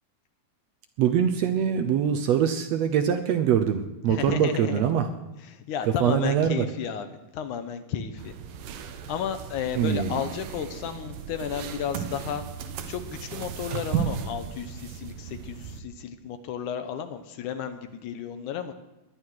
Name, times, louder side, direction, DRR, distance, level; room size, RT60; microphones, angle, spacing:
voice 1, 1.0-5.1 6.0-6.7 9.8-10.2, right 8 dB, 70° right, 7 dB, 1.6 m, -23 dB
voice 2, 4.1-4.8 5.4-8.3 9.1-12.4 12.9-18.7, left 8 dB, 70° left, 9 dB, 2.3 m, -33 dB
sound 1, 8.2-15.8, right 8 dB, 85° right, 2.7 m, -35 dB
19.5 x 11.5 x 4.7 m, 1.0 s
omnidirectional pair, 3.8 m